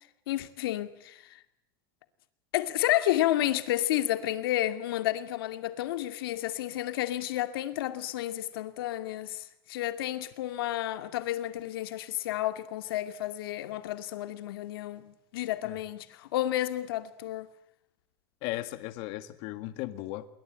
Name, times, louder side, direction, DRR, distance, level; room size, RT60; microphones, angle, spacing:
voice 1, 0.3-1.4 2.5-17.5, left 14 dB, 75° left, 2.5 m, -31 dB
voice 2, 18.4-20.3, left 17 dB, 40° left, 1.8 m, -36 dB
28.5 x 23.0 x 9.0 m
supercardioid pair, 180°, 12 cm